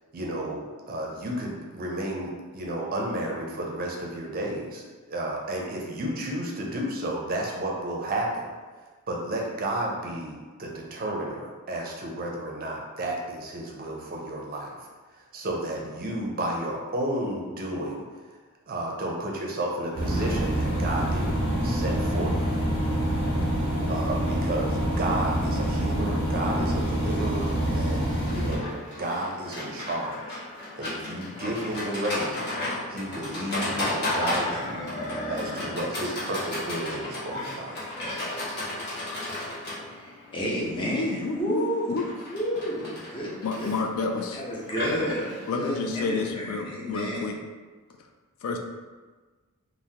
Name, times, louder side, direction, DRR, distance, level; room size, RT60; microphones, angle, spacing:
voice 1, 0.1-8.5 9.1-14.7 15.2-18.0 18.7-22.6 23.9-30.4 30.8-32.6 32.9-34.8 35.3-37.8, right 1 dB, 40° right, -1 dB, 0.5 m, -32 dB
sound 1, 19.9-28.5, equal, 85° left, 1.0 m, -26 dB
Livestock farm animals working animals, 28.3-46.3, left 1 dB, 50° left, 0.9 m, -34 dB
voice 2, 39.9-42.0 42.3-43.7 44.3-47.3, equal, 25° left, -4 dB, 0.6 m, -31 dB
voice 3, 40.9-42.1 43.4-44.4 45.5-47.3 48.4-48.6, left 3 dB, 70° left, 4 dB, 0.3 m, -30 dB
3.4 x 2.0 x 2.7 m, 1.3 s
head